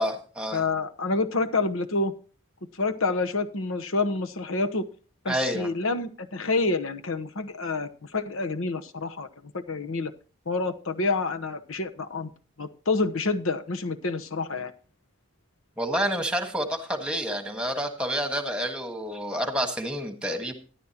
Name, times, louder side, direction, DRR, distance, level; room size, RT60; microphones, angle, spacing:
voice 1, 0.0-0.6 5.3-5.7 15.8-20.5, equal, 5° right, 6 dB, 1.5 m, -29 dB
voice 2, 0.5-2.1 2.8-4.9 5.2-9.3 9.7-10.1 10.5-12.3 12.6-14.7, left 3 dB, 75° left, 8 dB, 1.0 m, -28 dB
13.5 x 11.5 x 2.9 m, 0.39 s
head